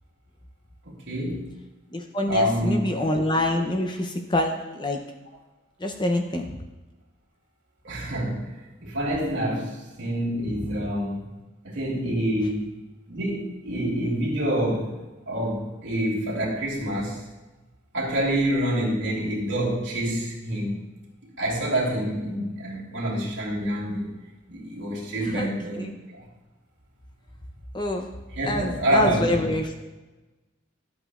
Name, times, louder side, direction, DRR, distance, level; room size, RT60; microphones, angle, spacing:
voice 1, 0.9-1.5 2.3-2.9 7.8-11.2 11.6-12.8 13.1-15.0 15.3-17.2 17.9-20.8 21.4-24.1 24.5-25.9 26.1-26.2 28.3-29.5, equal, 65° right, -4 dB, 2.7 m, -27 dB
voice 2, 1.9-5.0 5.8-6.6 10.6-10.7 25.2-25.5 25.8-25.9 27.7-28.1 28.4-29.8, left 1 dB, 20° left, 3 dB, 0.6 m, -26 dB
12.5 x 8.1 x 2.4 m, 1.1 s
head